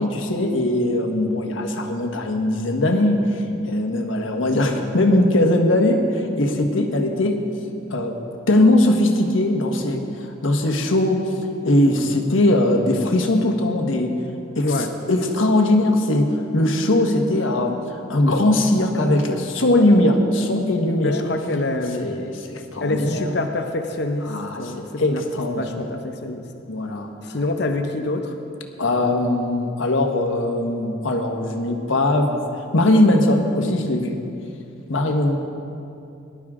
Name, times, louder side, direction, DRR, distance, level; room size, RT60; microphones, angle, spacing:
voice 1, 0.0-7.4 7.9-8.2 8.5-14.1 14.5-21.2 22.0-23.3 24.3-25.9 26.7-27.1 28.8-32.4 32.7-34.2 34.9-35.4, left 1 dB, 85° left, 3 dB, 1.3 m, -20 dB
voice 2, 21.0-22.1 22.8-25.2 25.5-26.5 27.2-28.4, left 2 dB, 55° left, 5 dB, 0.7 m, -26 dB
18.5 x 11.5 x 3.7 m, 2.7 s
head